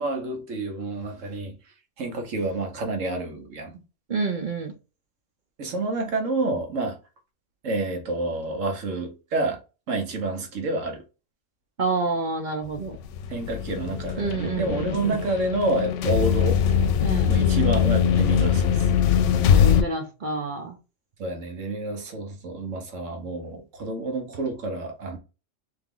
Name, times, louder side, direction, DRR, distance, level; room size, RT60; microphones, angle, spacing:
voice 1, 0.0-1.5 2.0-3.8 5.6-7.0 7.6-9.6 9.9-11.0 13.3-16.6 17.3-18.9 21.2-25.2, right 2 dB, 80° right, 1.5 m, -29 dB
voice 2, 4.1-4.7 11.8-13.0 14.2-15.2 17.0-17.3 19.4-20.7, right 3 dB, 45° right, 0.7 m, -28 dB
sound 1, 12.8-19.8, left 8 dB, 75° left, 0.9 m, -22 dB
3.6 x 3.2 x 3.7 m
omnidirectional pair, 1.3 m